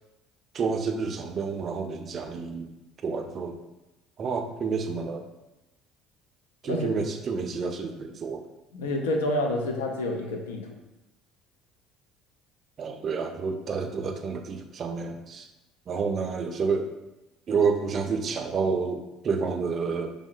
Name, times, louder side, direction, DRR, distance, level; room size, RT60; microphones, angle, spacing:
voice 1, 0.5-2.7 3.0-3.6 4.2-5.2 6.6-8.4 12.8-15.5 15.9-16.9 17.5-20.1, right 5 dB, 45° right, 6 dB, 0.3 m, -29 dB
voice 2, 8.7-10.7, left 1 dB, 90° left, 3 dB, 0.4 m, -28 dB
3.5 x 2.0 x 2.4 m, 0.99 s
hypercardioid pair, 75°, 0 cm